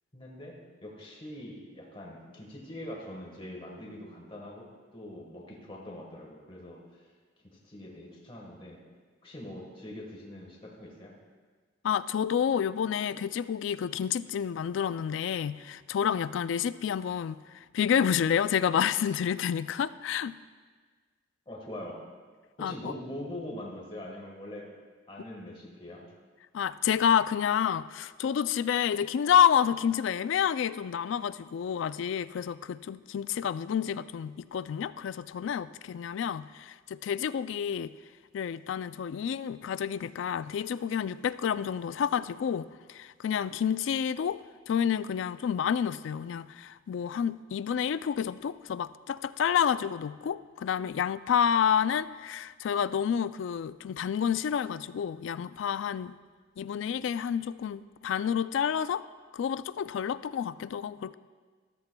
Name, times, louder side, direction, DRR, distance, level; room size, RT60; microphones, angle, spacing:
voice 1, 0.1-7.1 7.4-8.8 9.2-11.1 21.5-22.0 22.6-24.7 25.1-26.0, left 1 dB, 25° left, -2 dB, 1.4 m, -43 dB
voice 2, 11.8-20.4 22.6-22.9 26.5-37.9 38.3-44.4 44.7-56.1 56.6-59.1 59.3-61.1, left 8 dB, 70° left, 16 dB, 0.3 m, -29 dB
14.0 x 13.5 x 2.2 m, 1.5 s
head